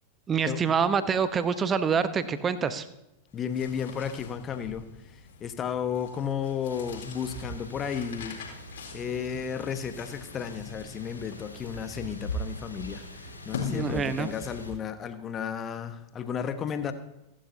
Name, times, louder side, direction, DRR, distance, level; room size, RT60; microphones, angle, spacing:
voice 1, 0.3-2.9 13.6-14.3, right 6 dB, 20° right, 13 dB, 0.9 m, -26 dB
sound 1, 3.3-14.5, left 6 dB, 60° left, 4.1 m, -43 dB
voice 2, 3.3-16.9, left 8 dB, 25° left, 9 dB, 1.3 m, -33 dB
sound 2, 6.7-14.7, right 1 dB, 80° left, 4.5 m, -41 dB
26.5 x 11.5 x 2.8 m, 0.89 s
figure-of-eight pair, 90°, 0 cm